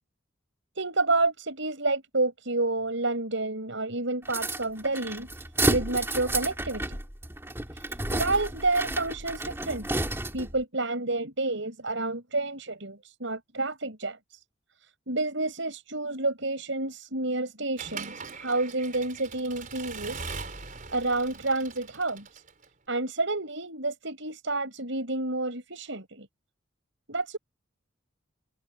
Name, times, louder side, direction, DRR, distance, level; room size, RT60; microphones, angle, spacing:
voice 1, 0.8-5.3 5.7-7.0 7.7-9.9 10.3-14.4 15.1-20.3 20.9-22.4 22.9-26.3 27.1-27.4, right 2 dB, 65° right, 6.4 m, -29 dB
sound 1, 4.2-10.6, right 2 dB, 10° right, 2.5 m, -31 dB
Accelerating revving vroom / Mechanisms, 17.8-22.7, right 4 dB, 40° right, 5.2 m, -41 dB
open air
head